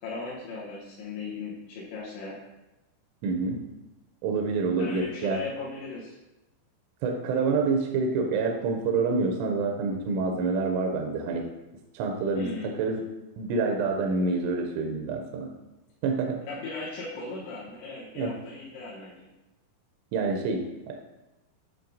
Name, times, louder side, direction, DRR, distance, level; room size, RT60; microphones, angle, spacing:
voice 1, 0.0-2.4 4.8-6.1 12.3-12.7 16.5-19.3, left 3 dB, 75° left, -8 dB, 3.1 m, -37 dB
voice 2, 3.2-3.6 4.2-5.4 7.0-11.5 11.9-13.0 13.4-15.5 16.0-16.4 18.2-18.3 20.1-20.9, right 4 dB, 85° right, 2 dB, 3.0 m, -27 dB
10.5 x 4.0 x 2.6 m, 0.99 s
omnidirectional pair, 5.7 m